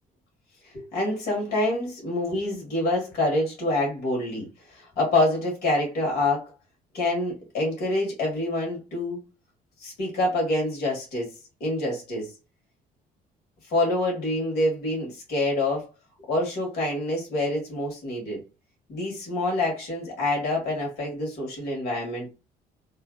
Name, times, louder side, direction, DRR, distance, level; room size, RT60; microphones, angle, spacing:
voice 1, 0.7-6.5 6.9-9.2 9.8-11.3 11.6-12.3 13.7-15.9 16.3-18.4 18.9-22.3, left 1 dB, 70° left, 1.7 m, -26 dB
3.1 x 2.4 x 2.3 m
cardioid pair, 110°, 17 cm